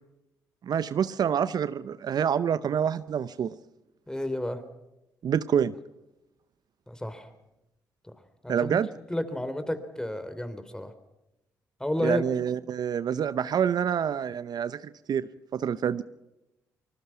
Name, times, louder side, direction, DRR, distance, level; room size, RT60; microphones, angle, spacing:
voice 1, 0.6-3.5 5.2-5.7 8.5-8.9 12.0-16.0, right 8 dB, 60° right, 15 dB, 0.7 m, -27 dB
voice 2, 4.1-4.6 6.9-7.3 8.4-8.8 9.1-10.9 11.8-12.2, left 1 dB, 10° left, 11 dB, 3.5 m, -31 dB
25.5 x 20.0 x 5.9 m, 0.92 s
supercardioid pair, 50°, 8 cm